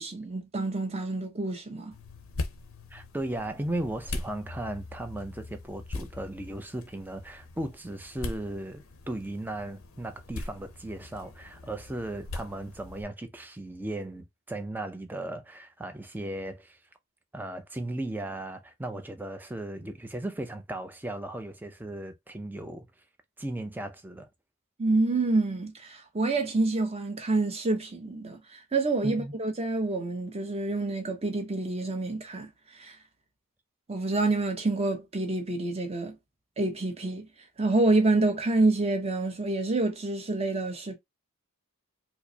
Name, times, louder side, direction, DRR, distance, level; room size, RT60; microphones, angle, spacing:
voice 1, 0.0-1.9 24.8-33.0 33.9-36.1 36.6-37.3 37.6-40.9, right 2 dB, 30° right, 0.8 m, -27 dB
sound 1, 1.9-13.0, left 2 dB, 70° left, 0.7 m, -41 dB
voice 2, 2.9-16.8 17.3-22.9 23.4-24.3 29.0-29.3, right 1 dB, 10° right, 0.5 m, -36 dB
4.6 x 2.1 x 2.8 m
head